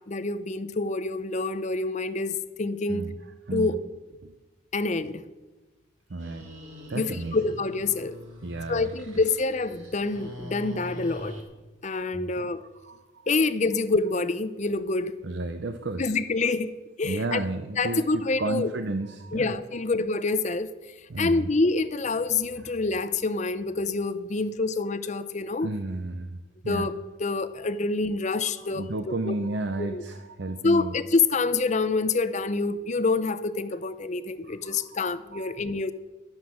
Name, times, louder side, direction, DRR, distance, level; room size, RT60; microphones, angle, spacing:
voice 1, 0.0-3.1 3.5-3.8 4.7-5.2 6.9-8.2 8.7-11.4 11.8-12.6 13.3-15.1 16.0-17.4 17.8-18.7 19.3-20.7 21.2-25.7 26.7-26.9 27.2-29.3 29.8-30.0 30.6-35.9, left 3 dB, 35° left, 0.5 m, -27 dB
voice 2, 3.5-3.8 4.2-4.4 6.1-6.5 6.9-7.4 8.4-8.9 12.1-12.5 12.8-13.3 15.2-16.2 17.0-18.0 18.4-19.6 21.1-21.5 25.6-26.4 26.6-26.9 28.6-31.0 34.5-35.6, right 2 dB, 60° right, 0.7 m, -33 dB
sound 1, 6.2-11.4, left 1 dB, 75° right, 2.6 m, -43 dB
12.0 x 9.6 x 6.2 m
head